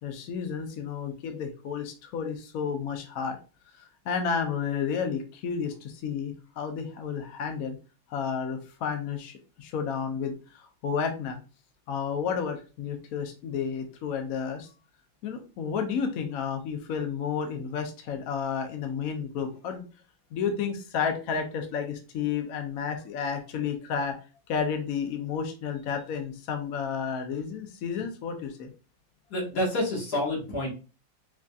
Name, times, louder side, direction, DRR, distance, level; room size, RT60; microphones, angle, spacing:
voice 1, 0.0-3.4 4.1-7.8 8.1-11.4 11.9-14.7 15.2-19.8 20.3-24.2 24.5-28.7, left 6 dB, 70° left, 5 dB, 0.8 m, -31 dB
voice 2, 29.3-30.7, left 1 dB, 55° left, -3 dB, 1.9 m, -28 dB
4.8 x 2.6 x 2.3 m, 0.33 s
omnidirectional pair, 2.1 m